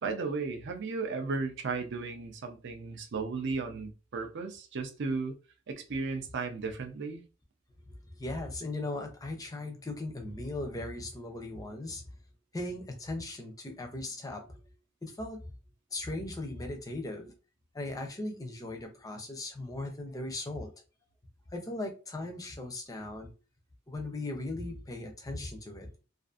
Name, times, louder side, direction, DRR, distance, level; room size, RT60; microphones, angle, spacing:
voice 1, 0.0-5.3 5.7-7.2, right 4 dB, 55° right, 0.5 m, -35 dB
voice 2, 7.9-12.0 12.5-14.5 15.0-15.4 15.9-17.3 17.7-20.7 21.5-23.3 23.9-25.9, left 2 dB, 15° left, 0.5 m, -38 dB
2.5 x 2.4 x 2.4 m
head